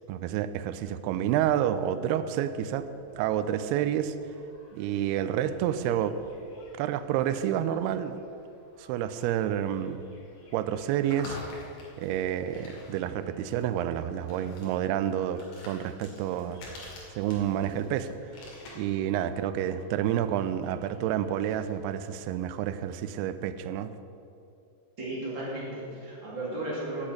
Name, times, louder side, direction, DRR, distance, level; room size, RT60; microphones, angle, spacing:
voice 1, 0.1-2.9 3.1-4.1 4.7-6.2 6.8-8.2 8.8-10.0 10.5-11.4 12.0-16.6 17.2-18.1 18.8-23.9, right 10 dB, 85° right, 11 dB, 2.3 m, -29 dB
sound 1, 2.7-21.7, left 2 dB, 65° left, 4.2 m, -51 dB
voice 2, 25.0-27.1, right 1 dB, 30° right, -6 dB, 2.8 m, -35 dB
8.8 x 8.1 x 8.5 m, 2.7 s
omnidirectional pair, 5.1 m